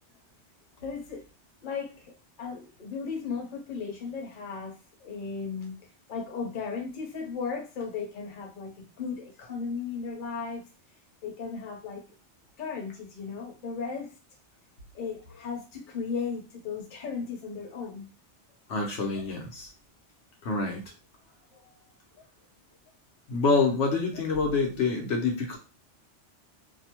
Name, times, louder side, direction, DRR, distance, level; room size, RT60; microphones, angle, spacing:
voice 1, 0.8-1.2 1.6-2.1 2.4-4.7 5.0-5.7 6.1-10.6 11.2-12.0 12.6-14.1 14.9-18.1, left 5 dB, 50° left, 1 dB, 0.8 m, -35 dB
voice 2, 18.7-19.7 20.4-20.8 23.3-25.6, left 4 dB, 85° left, 0 dB, 1.1 m, -26 dB
2.7 x 2.1 x 2.8 m, 0.32 s
omnidirectional pair, 1.2 m